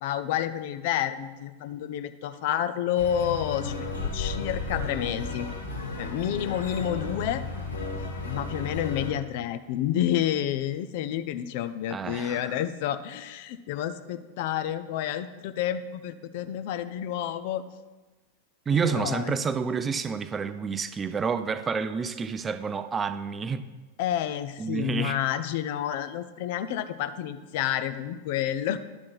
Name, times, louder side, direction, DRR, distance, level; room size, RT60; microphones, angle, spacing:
voice 1, 0.0-5.5 6.0-7.4 8.2-17.6 18.8-19.3 24.0-28.8, left 10 dB, 50° left, 11 dB, 0.4 m, -29 dB
sound 1, 3.0-9.1, left 3 dB, 75° left, 1.2 m, -33 dB
voice 2, 11.9-12.6 18.7-23.7 24.6-25.2, right 6 dB, 20° right, 11 dB, 0.4 m, -29 dB
11.0 x 3.7 x 5.9 m, 1.2 s
figure-of-eight pair, 90°, 0 cm